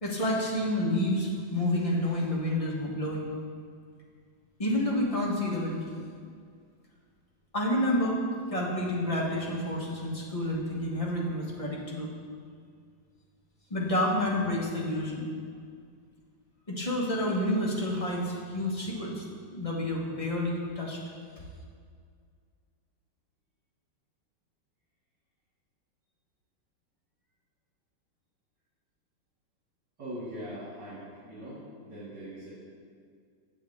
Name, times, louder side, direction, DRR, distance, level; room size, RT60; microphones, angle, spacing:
voice 1, 0.0-3.3 4.6-5.8 7.5-8.2 8.5-12.1 13.7-15.3 16.7-19.2 19.5-21.0, left 1 dB, 25° left, -4 dB, 1.0 m, -29 dB
voice 2, 30.0-32.5, equal, 65° right, -10 dB, 2.7 m, -41 dB
7.6 x 7.1 x 3.5 m, 2.1 s
omnidirectional pair, 2.0 m